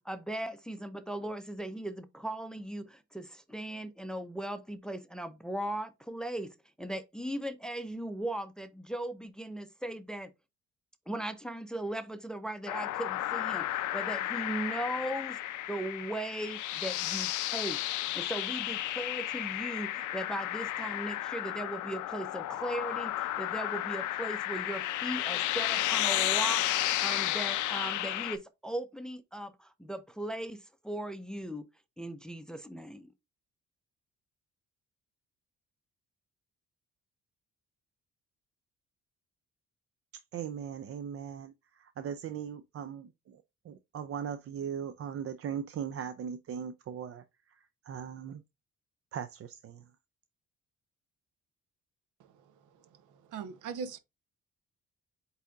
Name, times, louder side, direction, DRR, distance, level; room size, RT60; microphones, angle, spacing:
voice 1, 0.0-10.3 11.1-17.8 18.1-26.6 27.0-31.7 32.0-33.1, right 1 dB, ahead, 0.5 m, -38 dB
sound 1, 12.7-28.4, left 14 dB, 75° left, 0.5 m, -33 dB
voice 2, 40.3-48.4 49.1-49.8, right 8 dB, 50° right, 0.5 m, -39 dB
voice 3, 53.3-54.0, right 6 dB, 80° right, 0.8 m, -38 dB
8.1 x 2.7 x 2.4 m
cardioid pair, 90°, 30 cm